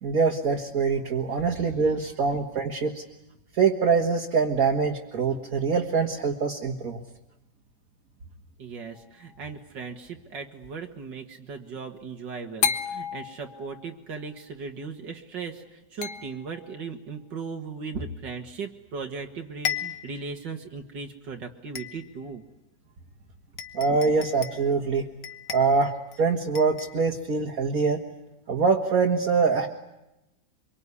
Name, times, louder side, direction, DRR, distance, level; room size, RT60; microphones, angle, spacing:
voice 1, 0.0-3.0 3.6-7.0 23.7-25.0 25.5-25.9 26.2-28.0 28.5-29.7, right 5 dB, 50° right, 2 dB, 2.1 m, -24 dB
voice 2, 8.6-22.4, right 5 dB, 75° right, 3 dB, 2.4 m, -37 dB
sound 1, 8.9-9.5 12.6-13.9 16.0-16.8 18.9-19.0 19.3-19.4 19.6-20.3 20.8-20.9 21.7-22.3 23.1-23.2 23.6-24.7 25.2-26.2 26.5-27.0, left 8 dB, 65° left, 1.8 m, -33 dB
25.0 x 23.5 x 9.8 m, 0.92 s
omnidirectional pair, 2.0 m